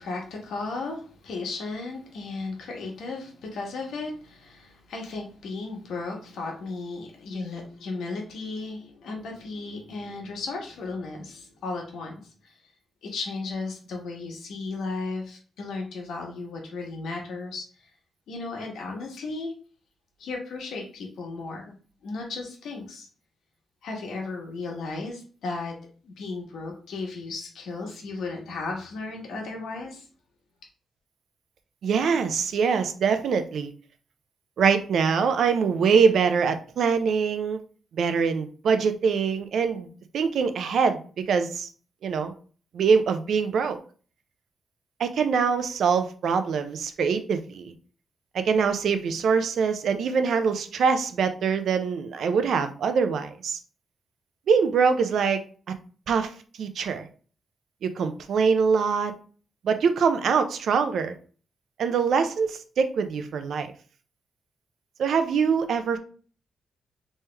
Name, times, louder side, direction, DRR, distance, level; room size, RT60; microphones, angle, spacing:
voice 1, 0.0-12.5 13.0-17.9 18.3-19.5 20.2-21.7 22.0-23.1 23.8-25.8 26.0-30.1, left 3 dB, 85° left, 0 dB, 1.2 m, -35 dB
voice 2, 31.8-33.7 34.6-37.6 37.9-39.9 40.1-41.7 42.0-42.3 42.7-43.8 45.0-47.7 48.3-53.6 54.5-55.4 55.7-55.8 56.1-56.3 56.6-57.1 57.8-59.1 59.6-61.2 61.8-63.7 65.0-66.0, right 6 dB, 70° right, 9 dB, 0.5 m, -23 dB
3.2 x 3.1 x 3.4 m, 0.41 s
cardioid pair, 130°, 0 cm